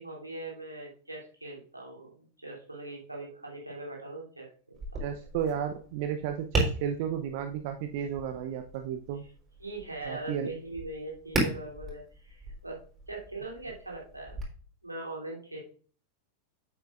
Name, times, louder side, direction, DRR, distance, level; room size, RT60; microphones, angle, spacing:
voice 1, 0.0-4.5 4.9-5.0 9.6-12.8 13.1-14.4 14.8-15.6, right 2 dB, 85° right, -2 dB, 3.2 m, -41 dB
Tap, 4.7-14.4, right 2 dB, 20° right, 3.8 m, -37 dB
voice 2, 5.0-9.2 10.1-10.5, right 8 dB, 50° right, 7 dB, 0.7 m, -33 dB
10.0 x 8.1 x 2.5 m, 0.43 s
figure-of-eight pair, 90°, 0 cm